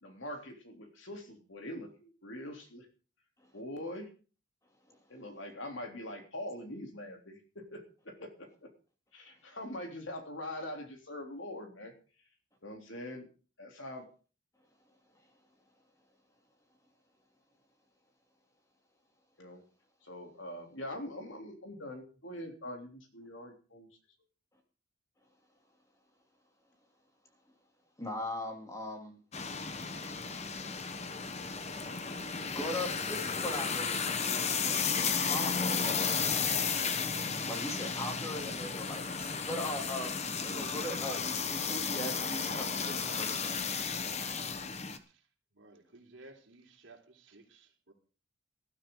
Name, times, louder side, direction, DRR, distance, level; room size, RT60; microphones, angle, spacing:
voice 1, 0.0-2.9 3.5-4.1 5.1-8.7 9.1-11.9 12.6-13.3 13.6-14.0 19.4-19.6 20.0-23.9, left 1 dB, 70° left, 4 dB, 3.3 m, -43 dB
voice 2, 28.0-29.2 32.5-35.9 37.5-43.6, left 1 dB, 15° left, 3 dB, 2.9 m, -40 dB
sound 1, 29.3-45.0, left 5 dB, 35° left, 1.1 m, -33 dB
voice 3, 45.5-47.9, right 2 dB, 70° right, 1 dB, 3.5 m, -56 dB
19.0 x 12.5 x 3.8 m, 0.37 s
head